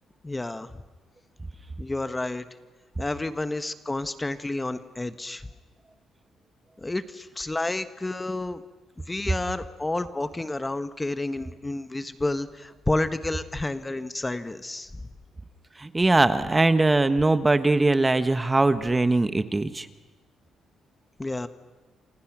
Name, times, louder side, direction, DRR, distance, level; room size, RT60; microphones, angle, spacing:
voice 1, 0.2-0.7 1.8-2.4 3.0-5.5 6.8-8.6 9.1-14.9 21.2-21.5, left 2 dB, 15° left, 11 dB, 1.2 m, -30 dB
voice 2, 15.8-19.9, right 2 dB, 20° right, 12 dB, 1.3 m, -21 dB
30.0 x 27.0 x 6.2 m, 1.2 s
cardioid pair, 90°, 0 cm